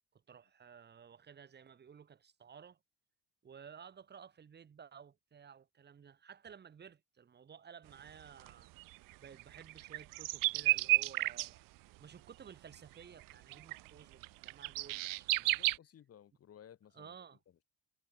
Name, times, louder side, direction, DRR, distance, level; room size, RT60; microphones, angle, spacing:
voice 1, 0.1-2.8 3.4-8.7 9.2-11.6 12.0-15.7 16.9-17.4, right 7 dB, 30° right, 2.4 m, -55 dB
sound 1, 8.1-8.2 8.4-8.5 8.8-11.5 12.7-12.8 13.2-15.8, right 20 dB, 65° right, 0.6 m, -32 dB
voice 2, 15.5-17.6, left 10 dB, 40° left, 3.6 m, -59 dB
cardioid pair, 150°, 36 cm